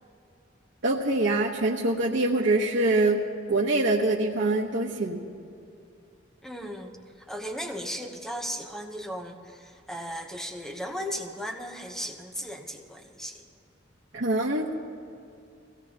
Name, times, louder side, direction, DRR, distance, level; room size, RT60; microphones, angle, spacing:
voice 1, 0.8-3.2 3.5-5.2 14.1-14.7, right 2 dB, 80° right, -4 dB, 1.1 m, -24 dB
voice 2, 6.4-6.9 7.2-13.4, equal, 5° left, 3 dB, 0.9 m, -36 dB
23.0 x 17.0 x 2.9 m, 2.5 s
head